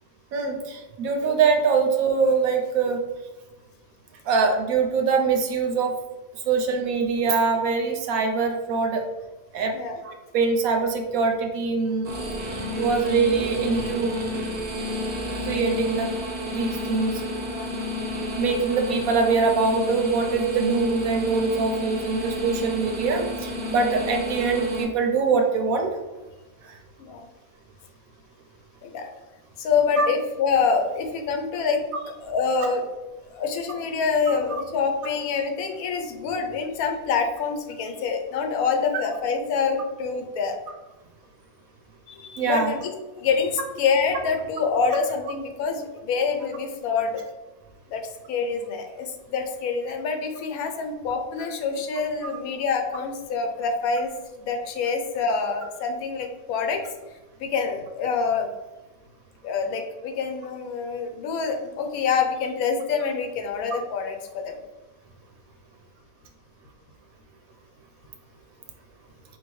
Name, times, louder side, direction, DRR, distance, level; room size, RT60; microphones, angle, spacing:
voice 1, 0.3-3.0 4.3-5.9 6.5-9.0 9.5-9.7 10.0-12.1 12.8-14.2 15.4-16.1 16.5-17.2 18.4-25.9 26.6-26.8 30.0-30.1 42.4-42.7 52.2-52.3, right 4 dB, 70° right, 3 dB, 1.0 m, -23 dB
sound 1, 12.0-24.8, left 1 dB, 50° right, 0.5 m, -31 dB
voice 2, 29.6-31.8 32.2-32.8 33.3-40.6 42.1-42.9 43.2-47.2 47.9-48.0 48.3-54.1 54.4-56.8 57.4-58.5 59.4-64.6, left 5 dB, 75° left, 5 dB, 1.0 m, -26 dB
4.3 x 2.8 x 3.0 m, 1.1 s
omnidirectional pair, 1.6 m